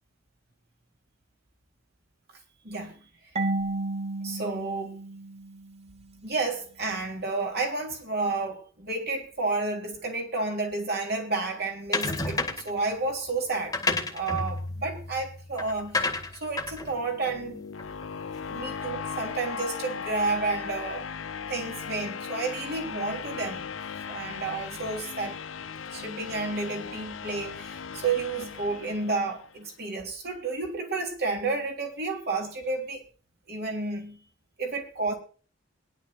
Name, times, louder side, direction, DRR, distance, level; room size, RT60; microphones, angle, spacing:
voice 1, 2.6-3.0 4.2-5.0 6.2-17.6 18.5-21.1 21.5-23.6 24.1-25.4 25.9-33.0 33.5-34.2 34.6-35.1, right 3 dB, 55° right, 3.5 m, -31 dB
Marimba xylophone / Wood, 3.4-6.1, right 2 dB, 35° right, 1.1 m, -32 dB
sound 1, 11.9-12.8 13.5-18.2, left 3 dB, 20° left, 1.8 m, -31 dB
sound 2, 16.6-29.6, left 6 dB, 90° left, 0.7 m, -38 dB
21.5 x 11.0 x 2.5 m
head